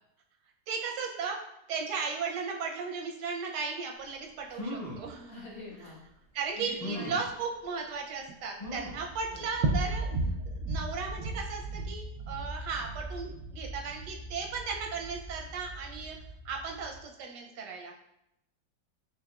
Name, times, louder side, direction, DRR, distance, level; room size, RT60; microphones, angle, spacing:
voice 1, 0.7-1.4 1.7-5.4 5.8-5.9 6.3-10.0 10.7-16.2 16.4-17.9, right 5 dB, 90° right, 1 dB, 1.3 m, -36 dB
sound 1, 4.1-4.2 4.5-5.1 5.8-5.9 6.8-7.3 8.6-9.1 9.6-9.7 10.0-10.1, left 1 dB, 25° left, 1.0 m, -38 dB
voice 2, 5.3-6.0 6.6-7.1 9.4-9.5, left 3 dB, 70° left, -7 dB, 2.0 m, -45 dB
sound 2, 8.7-17.0, right 2 dB, 70° right, 0.9 m, -36 dB
4.7 x 3.4 x 2.3 m, 0.83 s
omnidirectional pair, 1.8 m